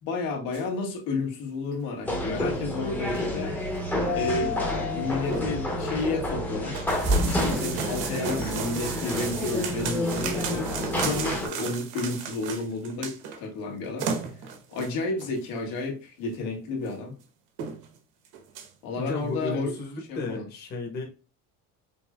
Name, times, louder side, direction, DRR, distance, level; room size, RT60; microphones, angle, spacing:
voice 1, 0.0-3.6 4.1-4.6 4.9-6.9 7.2-10.7 11.0-14.1 14.7-17.1 18.8-19.7 20.1-20.4, left 3 dB, 80° left, 1.8 m, -31 dB
sound 1, 0.5-0.6 1.2-1.4 1.7-1.8 2.3-2.4 2.9-3.4 3.8-3.9 4.2-4.3 4.6-4.8 5.0-6.0 6.7-13.4 13.7-13.8 14.0-15.4 16.2-16.3 16.8-16.9 17.2-17.3 17.6-18.0 18.2-18.7, right 6 dB, 65° right, 1.0 m, -34 dB
sound 2, 2.1-11.5, left 1 dB, 5° left, 0.7 m, -29 dB
Mallet percussion, 4.1-6.6, left 12 dB, 60° left, 0.7 m, -35 dB
voice 2, 19.0-21.1, left 2 dB, 30° left, 1.1 m, -34 dB
5.4 x 3.6 x 2.3 m
cardioid pair, 175°, 35 cm